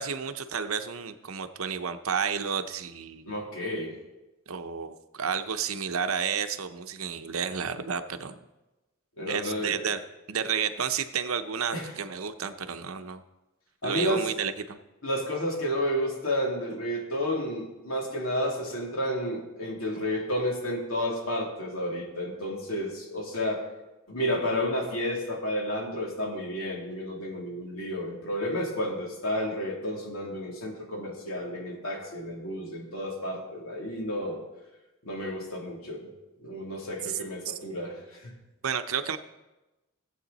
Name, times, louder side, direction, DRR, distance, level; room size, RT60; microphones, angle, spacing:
voice 1, 0.0-3.3 4.5-8.3 9.3-10.0 10.3-13.2 13.8-14.8 37.1-37.2 37.4-37.5 38.6-39.2, right 7 dB, 80° right, 9 dB, 0.7 m, -31 dB
voice 2, 3.3-3.9 9.2-9.9 10.4-10.5 11.7-11.9 13.8-14.3 15.0-23.6 24.1-34.4 35.0-36.1 36.4-38.3, equal, 75° left, -1 dB, 2.8 m, -31 dB
17.5 x 7.9 x 4.1 m, 1.0 s
head